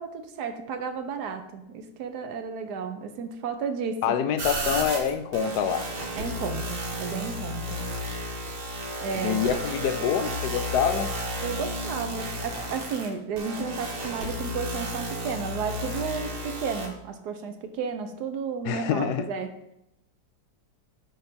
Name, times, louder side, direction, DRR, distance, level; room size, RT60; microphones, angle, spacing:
voice 1, 0.0-4.2 6.1-7.8 9.0-9.4 11.4-19.5, right 5 dB, 65° right, 7 dB, 1.2 m, -33 dB
voice 2, 4.0-5.9 9.2-11.1 18.7-19.3, left 8 dB, 75° left, 9 dB, 1.0 m, -26 dB
sound 1, 4.4-16.9, equal, 85° right, 2.2 m, -33 dB
9.8 x 3.7 x 4.3 m, 0.85 s
omnidirectional pair, 2.0 m